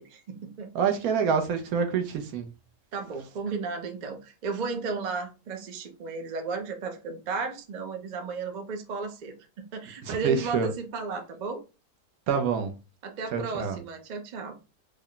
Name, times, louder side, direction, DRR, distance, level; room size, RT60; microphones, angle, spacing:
voice 1, 0.0-0.7 2.9-11.6 13.0-14.6, right 4 dB, 50° right, 0.5 m, -34 dB
voice 2, 0.7-2.5 10.1-10.7 12.3-12.7 13.3-13.8, right 6 dB, 75° right, 1.1 m, -26 dB
3.4 x 2.1 x 3.7 m
omnidirectional pair, 1.6 m